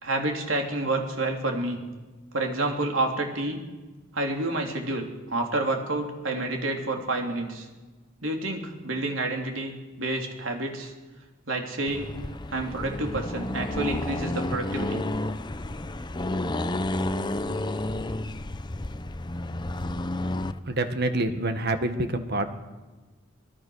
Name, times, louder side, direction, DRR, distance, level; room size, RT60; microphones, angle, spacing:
voice 1, 0.0-1.8 2.3-3.6 4.1-7.7 8.2-10.9 11.5-12.1 12.5-15.1, right 2 dB, 80° right, 2 dB, 3.5 m, -29 dB
Accelerating revving vroom, 11.9-20.6, left 1 dB, 20° left, 0.7 m, -31 dB
voice 2, 20.6-22.5, right 2 dB, 55° right, 8 dB, 1.7 m, -27 dB
25.0 x 19.0 x 6.5 m, 1.2 s
head